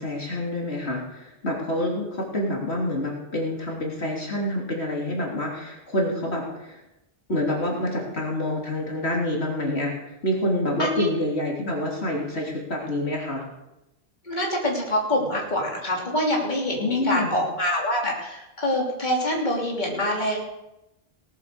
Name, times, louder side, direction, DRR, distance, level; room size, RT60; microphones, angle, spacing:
voice 1, 0.0-6.8 7.3-10.0 10.2-13.4 16.8-17.4, left 1 dB, 85° left, -2 dB, 3.4 m, -27 dB
voice 2, 14.3-20.4, left 1 dB, 45° left, -2 dB, 3.4 m, -25 dB
18.5 x 8.3 x 6.8 m, 0.92 s
omnidirectional pair, 1.1 m